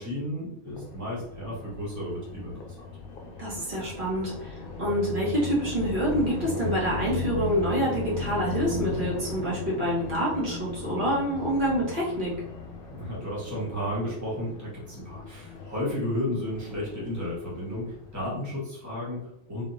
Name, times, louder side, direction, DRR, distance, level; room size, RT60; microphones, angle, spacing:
voice 1, 0.0-2.7 12.9-19.6, left 1 dB, 15° right, -6 dB, 1.3 m, -33 dB
sound 1, 0.7-18.4, left 4 dB, 60° left, 0.7 m, -37 dB
voice 2, 3.4-12.3, equal, 45° right, -6 dB, 1.7 m, -27 dB
3.6 x 3.5 x 2.7 m, 0.85 s
omnidirectional pair, 1.2 m